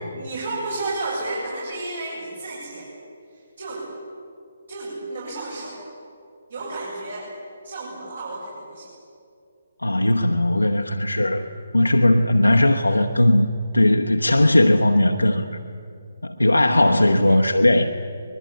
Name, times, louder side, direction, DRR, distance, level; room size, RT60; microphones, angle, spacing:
voice 1, 0.1-2.9 3.3-3.9 4.7-5.9 6.5-7.3 7.6-8.9 16.8-17.4, right 2 dB, 60° right, -6 dB, 7.7 m, -32 dB
voice 2, 9.8-11.5 11.7-13.5 13.7-15.6 16.2-17.9, left 1 dB, 80° left, 4 dB, 1.1 m, -18 dB
24.0 x 21.0 x 8.7 m, 2.4 s
figure-of-eight pair, 140°, 0 cm